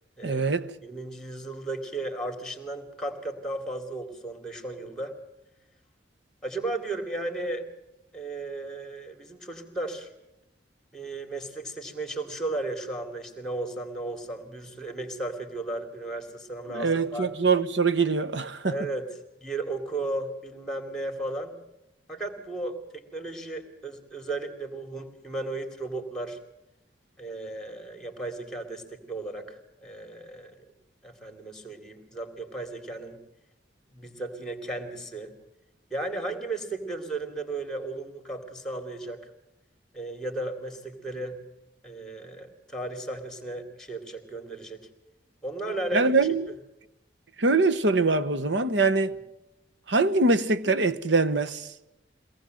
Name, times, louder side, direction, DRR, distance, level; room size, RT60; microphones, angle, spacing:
voice 1, 0.2-0.7 16.7-18.8 45.9-46.4 47.4-49.2 49.9-51.7, right 3 dB, 75° right, 1.1 m, -23 dB
voice 2, 0.8-5.2 6.4-7.7 8.1-10.1 10.9-17.3 18.6-19.1 19.4-21.5 22.1-26.4 27.2-30.6 31.0-33.2 33.9-35.3 35.9-39.2 39.9-41.4 41.8-44.9 45.4-46.1, right 2 dB, 5° left, 2.8 m, -35 dB
23.0 x 18.5 x 7.8 m
head